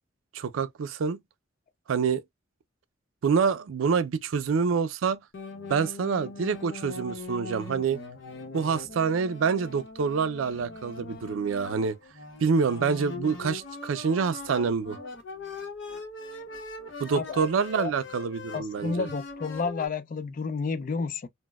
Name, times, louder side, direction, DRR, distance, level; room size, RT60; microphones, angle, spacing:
voice 1, 0.3-1.2 1.9-2.2 3.2-5.2 5.7-8.0 8.5-12.0 12.4-15.0 17.0-19.1, right 5 dB, 90° right, 0.4 m, -26 dB
sound 1, 5.3-19.9, left 3 dB, 65° left, 0.8 m, -41 dB
voice 2, 17.1-17.5 17.8-17.9 18.5-21.3, left 4 dB, 45° left, 0.3 m, -31 dB
4.0 x 2.1 x 2.2 m
head